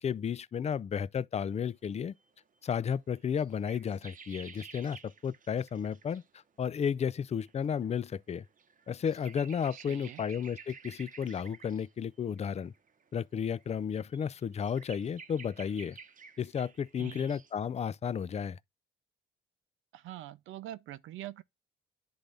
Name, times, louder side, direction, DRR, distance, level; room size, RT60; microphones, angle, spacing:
voice 1, 0.0-2.1 2.6-6.2 6.6-8.4 8.9-12.7 13.1-16.0 16.4-18.6, left 7 dB, 35° left, 0.4 m, -33 dB
sound 1, 1.7-1.8 2.1-2.3 2.7-6.3 7.4-7.5 7.8-13.1 13.6-17.5, right 5 dB, 40° right, 0.9 m, -52 dB
voice 2, 9.7-10.2 17.0-17.3 19.9-21.4, right 13 dB, 90° right, 0.7 m, -44 dB
10.0 x 3.9 x 3.4 m
cardioid pair, 90°, 20 cm